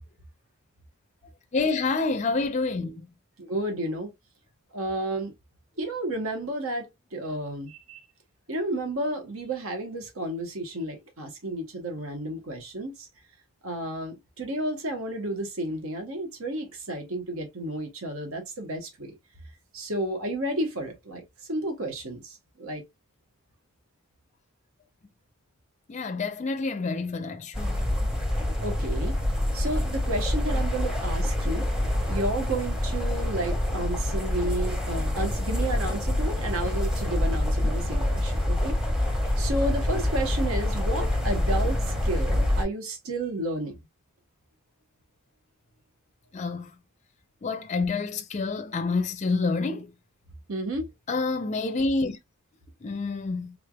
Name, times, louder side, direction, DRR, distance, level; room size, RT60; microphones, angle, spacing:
voice 1, 1.5-3.0 25.9-27.8 46.3-46.7 47.4-49.9 51.1-52.2 52.8-53.5, left 3 dB, 30° left, 0.4 m, -28 dB
voice 2, 3.4-4.1 4.7-5.3 5.8-8.0 8.5-13.1 13.6-19.1 19.7-21.2 21.5-22.8 28.6-29.1 29.5-31.7 32.1-38.8 39.4-43.8 50.5-50.9, right 1 dB, 70° right, 1.1 m, -32 dB
sound 1, 27.5-42.6, left 1 dB, 5° right, 0.8 m, -26 dB
3.6 x 3.3 x 2.2 m
head